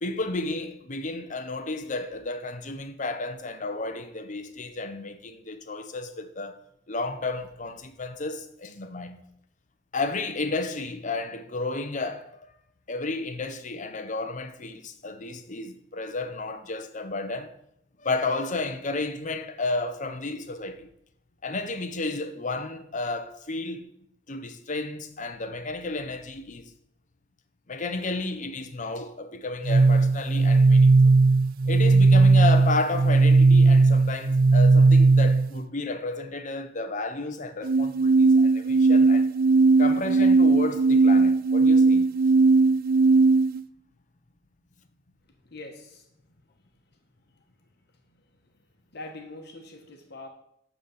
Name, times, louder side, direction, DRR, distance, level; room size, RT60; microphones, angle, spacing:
voice 1, 0.0-6.6 6.9-9.2 9.9-12.3 12.9-17.6 18.0-20.9 21.4-23.9 24.3-26.7 27.7-31.2 31.7-39.3 39.8-42.1, left 3 dB, 40° left, 0.8 m, -32 dB
sound 1, 29.6-35.6 37.6-43.6, right 3 dB, 45° right, 0.3 m, -18 dB
voice 2, 45.3-46.1 47.3-47.4 48.1-48.6 48.9-50.3, left 2 dB, 55° left, 1.3 m, -44 dB
12.0 x 4.0 x 7.1 m
head